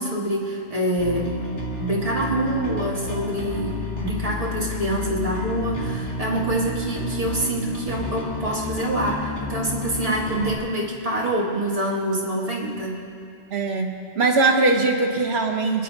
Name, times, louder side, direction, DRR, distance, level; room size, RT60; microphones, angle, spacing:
voice 1, 0.0-1.4 1.8-13.0, right 1 dB, 30° right, -3 dB, 2.1 m, -26 dB
Bass guitar, 1.0-10.6, left 2 dB, 80° left, 2.3 m, -30 dB
voice 2, 10.0-10.5 13.5-15.8, right 3 dB, 65° right, 3 dB, 1.3 m, -22 dB
26.5 x 10.0 x 2.9 m, 2.4 s
omnidirectional pair, 1.2 m